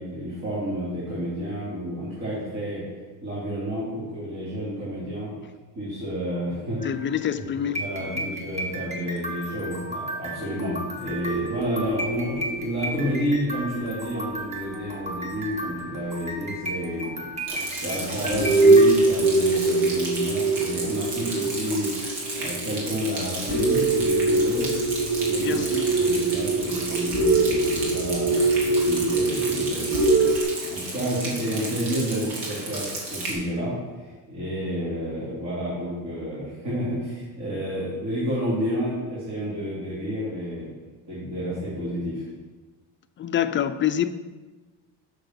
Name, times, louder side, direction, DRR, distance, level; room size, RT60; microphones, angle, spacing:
voice 1, 0.0-2.8 3.2-5.3 5.7-6.9 7.5-17.5 17.7-21.9 22.4-24.7 25.2-30.0 30.6-40.7 41.1-42.3, equal, 40° right, -9 dB, 3.2 m, -30 dB
voice 2, 6.8-7.8 8.2-8.3 25.4-25.9 43.2-44.1, left 10 dB, 30° left, 10 dB, 0.4 m, -26 dB
sound 1, 6.8-18.8, right 1 dB, 15° right, 1.4 m, -35 dB
sound 2, 11.1-15.0 15.5-15.6 16.6-16.7 17.3-17.4 17.8-18.0 18.3-30.4, right 3 dB, 65° right, 3.2 m, -23 dB
Rain, 17.5-33.3, right 2 dB, 80° right, 2.8 m, -34 dB
6.8 x 6.5 x 6.0 m, 1.3 s
cardioid pair, 115°, 41 cm